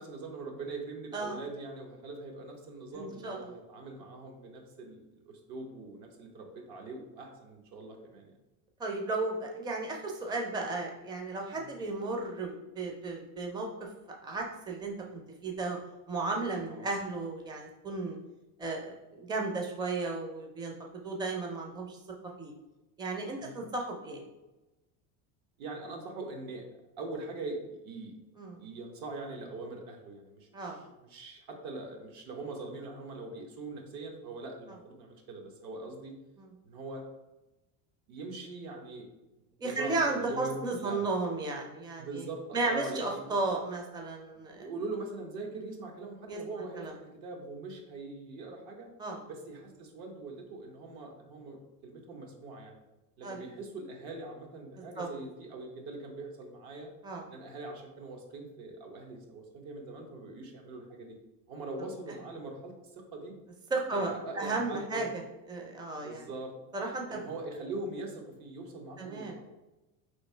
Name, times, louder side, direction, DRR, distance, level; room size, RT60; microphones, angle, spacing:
voice 1, 0.0-8.3 11.5-11.7 16.7-16.9 23.4-23.6 25.6-26.6 27.0-28.1 28.6-36.1 36.6-37.0 38.1-39.1 39.6-41.0 42.0-43.2 44.4-48.9 49.3-52.8 53.2-56.9 57.3-61.1 61.5-63.3 63.9-65.1 66.0-66.5 67.1-69.4, right 3 dB, 60° right, 1 dB, 1.0 m, -42 dB
voice 2, 2.9-3.5 8.8-13.7 14.2-15.8 16.1-18.2 18.6-20.7 21.0-22.0 22.4-22.5 23.0-24.2 28.4-28.6 30.5-30.8 36.4-36.5 39.6-42.2 42.5-44.7 46.3-46.4 46.8-46.9 49.0-49.2 53.2-53.4 55.0-55.1 57.0-57.2 63.7-65.1 65.5-66.3 66.7-67.2 69.0-69.4, right 3 dB, 10° right, 1 dB, 0.5 m, -34 dB
3.1 x 2.7 x 4.3 m, 1.0 s
supercardioid pair, 115°, 41 cm